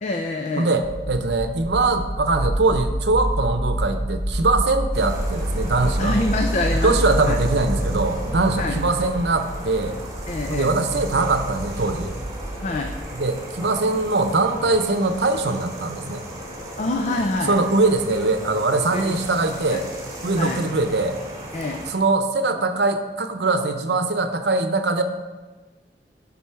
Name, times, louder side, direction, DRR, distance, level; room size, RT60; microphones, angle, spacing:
voice 1, 0.0-0.7 6.0-7.4 8.6-8.8 10.3-10.7 12.6-12.9 16.8-17.6 18.9-19.2 19.7-19.8 20.4-20.6 21.5-21.8, left 2 dB, 45° left, 4 dB, 0.6 m, -26 dB
voice 2, 0.6-6.2 6.8-10.0 10.5-12.1 13.1-16.2 17.4-19.8 20.2-21.2 21.9-25.0, right 3 dB, 70° right, 8 dB, 0.8 m, -22 dB
sound 1, 0.8-13.0, right 1 dB, 60° left, 2.5 m, -28 dB
sound 2, 4.9-21.9, equal, 20° right, 1.9 m, -36 dB
12.0 x 4.1 x 5.7 m, 1.3 s
head